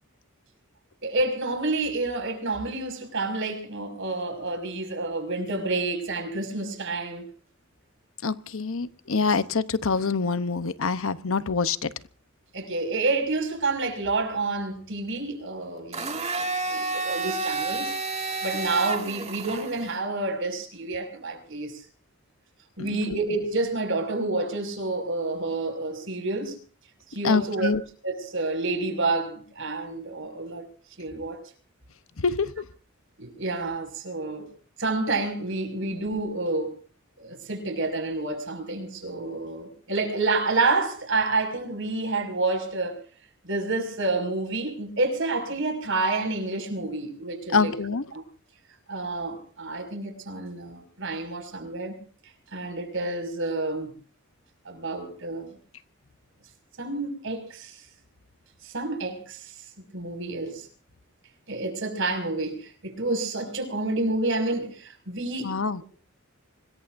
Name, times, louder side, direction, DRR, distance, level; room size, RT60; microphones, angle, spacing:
voice 1, 1.0-7.3 12.5-17.9 18.4-21.8 22.8-26.6 27.1-30.7 31.0-31.4 33.2-34.5 34.8-36.7 37.2-43.0 43.4-47.7 48.1-48.2 48.9-52.0 52.5-53.9 54.6-55.6 56.8-57.8 58.6-59.5 59.9-60.7 61.5-65.5, right 3 dB, 65° right, 6.0 m, -29 dB
voice 2, 8.2-11.9 22.9-23.0 27.2-27.8 32.2-32.6 47.5-48.0 65.4-65.8, left 4 dB, 70° left, 0.9 m, -25 dB
Domestic sounds home sounds, 15.9-20.0, right 3 dB, 30° right, 2.1 m, -30 dB
25.5 x 21.5 x 2.6 m
head